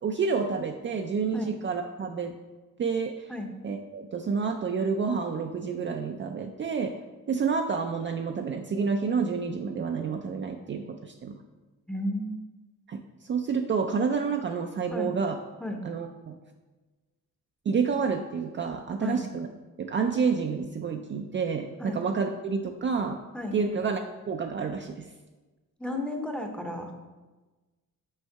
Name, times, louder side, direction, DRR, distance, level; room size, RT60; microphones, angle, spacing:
voice 1, 0.0-2.3 2.8-3.3 3.6-6.9 7.3-11.3 12.9-15.4 15.8-16.3 17.7-19.5 19.8-23.2 23.5-24.0 24.3-25.1, right 5 dB, 35° right, 4 dB, 0.4 m, -29 dB
voice 2, 11.9-12.4 14.9-15.1 15.6-15.8 19.0-19.2 21.8-22.0 23.3-23.6 25.8-26.9, left 1 dB, 5° left, 2 dB, 0.7 m, -33 dB
6.4 x 5.3 x 4.6 m, 1.2 s
wide cardioid pair, 145°, 32 cm